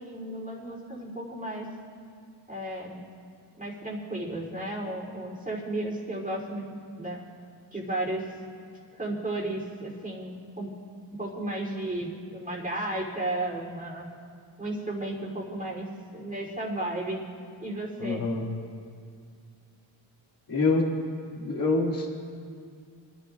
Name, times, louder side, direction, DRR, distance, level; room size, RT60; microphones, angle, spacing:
voice 1, 0.0-1.7 2.5-3.0 3.5-7.2 7.7-8.3 8.9-10.7 11.2-14.1 14.6-17.3 17.6-18.2, right 1 dB, 15° right, -4 dB, 3.5 m, -34 dB
voice 2, 18.0-18.5 20.5-20.9 21.3-22.1, left 3 dB, 45° left, -2 dB, 2.6 m, -26 dB
25.5 x 11.0 x 2.6 m, 2.2 s
cardioid pair, 75°, 49 cm